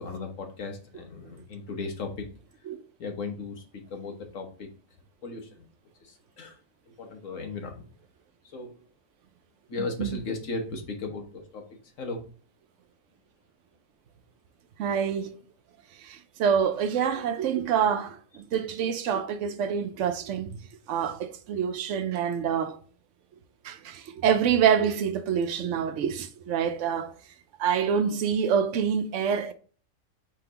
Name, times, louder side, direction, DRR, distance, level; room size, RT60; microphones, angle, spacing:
voice 1, 0.0-2.3 3.0-4.7 5.2-5.6 6.0-6.6 7.0-7.8 8.5-8.8 9.7-11.7 12.0-12.2, left 3 dB, 75° left, 1.4 m, -36 dB
voice 2, 14.8-15.4 16.0-20.6 20.9-22.8 23.6-27.1 27.6-29.5, right 7 dB, 70° right, 0.9 m, -26 dB
4.5 x 3.9 x 2.9 m
omnidirectional pair, 1.3 m